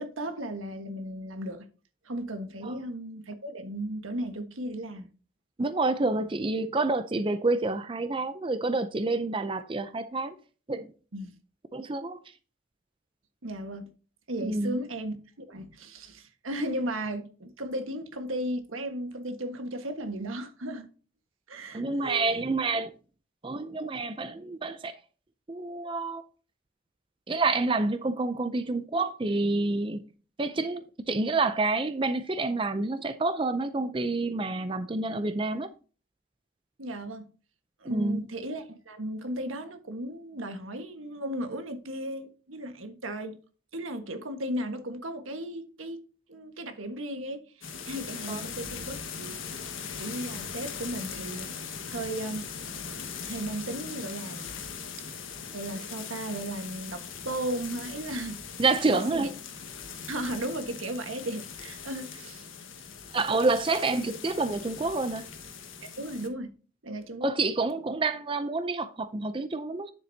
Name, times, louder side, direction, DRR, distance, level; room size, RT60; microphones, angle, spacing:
voice 1, 0.0-1.7 2.0-5.1 11.1-11.3 13.4-13.9 14.3-20.9 21.5-22.3 36.8-37.2 37.8-43.4 43.7-46.0 46.3-49.7 50.0-51.5 51.9-52.5 53.2-54.4 55.5-58.4 58.8-59.3 60.1-62.5 65.8-66.5 66.8-67.3, right 1 dB, 85° right, 1.5 m, -35 dB
voice 2, 5.6-10.4 10.7-10.9 11.7-12.2 14.4-14.8 21.7-22.9 23.4-25.0 25.5-26.2 27.3-30.0 30.4-35.7 37.8-38.2 48.3-48.5 58.6-59.3 63.1-65.2 67.2-69.9, right 3 dB, 25° right, 0.5 m, -28 dB
sound 1, 47.6-66.3, left 6 dB, 80° left, 1.4 m, -40 dB
9.6 x 7.6 x 2.8 m
head